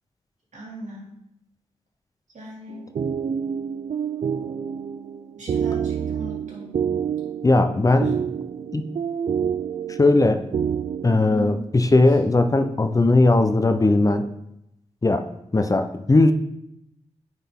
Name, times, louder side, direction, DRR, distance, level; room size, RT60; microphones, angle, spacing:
voice 1, 0.5-1.1 2.3-2.8 5.3-6.7 7.8-8.1 11.2-11.6 12.1-12.2, right 1 dB, 75° right, -3 dB, 2.2 m, -38 dB
sound 1, 2.7-11.2, right 7 dB, 60° right, 0.4 m, -28 dB
voice 2, 7.4-8.1 8.7-8.8 10.0-10.5 11.0-14.3 15.0-15.2 15.5-16.3, left 2 dB, 30° left, 8 dB, 0.5 m, -18 dB
9.3 x 4.0 x 3.6 m, 0.83 s
cardioid pair, 60°, 12 cm